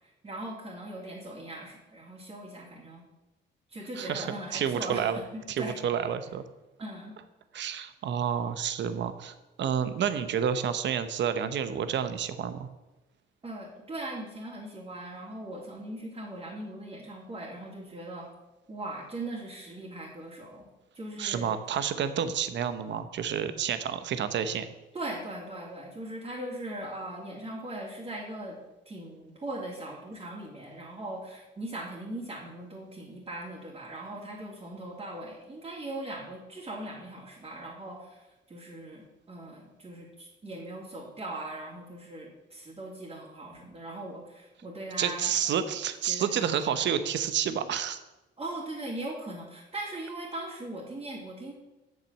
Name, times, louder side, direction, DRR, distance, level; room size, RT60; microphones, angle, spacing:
voice 1, 0.2-3.0 3.7-5.8 6.8-7.2 13.4-18.3 18.7-20.7 20.9-21.6 23.9-24.0 24.9-28.6 28.8-45.3 46.1-46.8 48.4-51.5, right 1 dB, 25° right, -5 dB, 2.9 m, -40 dB
voice 2, 4.0-5.2 5.5-6.4 7.5-12.7 21.2-24.7 45.0-48.0, right 8 dB, 65° right, 11 dB, 0.9 m, -29 dB
8.8 x 6.6 x 7.4 m, 1.0 s
cardioid pair, 90°, 20 cm